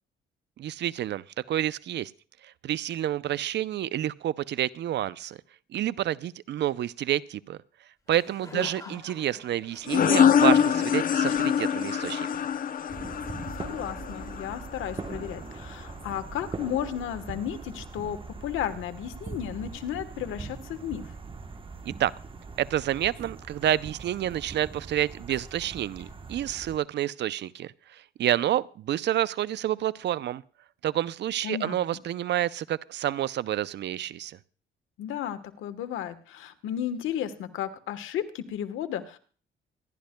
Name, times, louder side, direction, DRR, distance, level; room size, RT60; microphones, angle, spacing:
voice 1, 0.6-2.1 2.4-5.4 5.7-7.6 8.1-12.3 22.0-22.1 22.6-30.4 30.8-34.4, right 12 dB, 60° right, 18 dB, 0.5 m, -29 dB
Laughter, 8.1-12.0, left 1 dB, 20° left, 3.9 m, -49 dB
voice 2, 8.5-9.0 13.5-21.1 25.3-25.4 31.4-31.8 35.0-39.2, left 10 dB, 85° left, 10 dB, 1.2 m, -34 dB
sound 1, 9.9-15.2, left 8 dB, 45° left, 0.6 m, -24 dB
sound 2, 12.9-26.8, right 4 dB, 25° right, 1.1 m, -41 dB
25.5 x 11.5 x 2.2 m, 0.40 s
cardioid pair, 90°, 20 cm